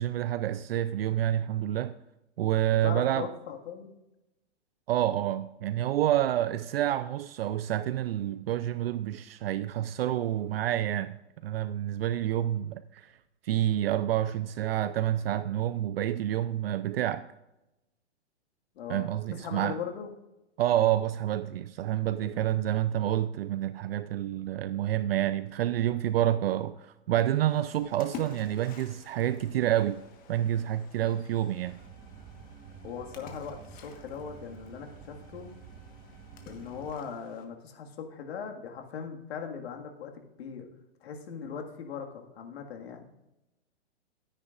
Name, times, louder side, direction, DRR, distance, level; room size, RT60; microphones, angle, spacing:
voice 1, 0.0-2.0 2.4-3.3 4.9-13.1 13.4-17.2 18.9-19.8 20.6-30.0 30.3-31.8, right 12 dB, 60° right, 0.5 m, -28 dB
voice 2, 2.7-3.9 18.8-20.1 22.2-22.4 32.8-35.5 36.4-40.7 41.0-43.1, left 7 dB, 65° left, 1.9 m, -39 dB
Splash splatter, 27.5-37.4, left 7 dB, 25° left, 1.4 m, -51 dB
sound 1, 31.7-36.9, right 6 dB, 25° right, 1.3 m, -50 dB
13.0 x 9.9 x 2.5 m
hypercardioid pair, 135°, 34 cm